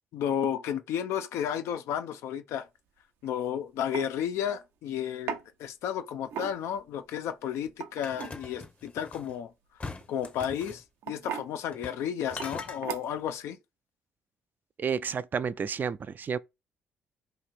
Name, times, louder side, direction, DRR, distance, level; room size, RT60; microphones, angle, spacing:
voice 1, 0.1-2.7 3.2-9.5 10.1-13.6, left 9 dB, 80° left, 0.5 m, -32 dB
sound 1, 3.2-3.4 3.9-4.1 5.3-5.4 6.3-6.8 7.7-8.4 10.0-10.3 11.0-11.5 12.4-12.5 12.8-13.3, right 7 dB, 80° right, 0.6 m, -36 dB
sound 2, 8.0-9.3 9.8-10.8 11.7-12.0 12.3-12.8, left 3 dB, 30° left, 0.7 m, -41 dB
voice 2, 14.8-16.4, right 6 dB, 45° right, 0.3 m, -31 dB
3.1 x 2.6 x 4.4 m
supercardioid pair, 70°, 5 cm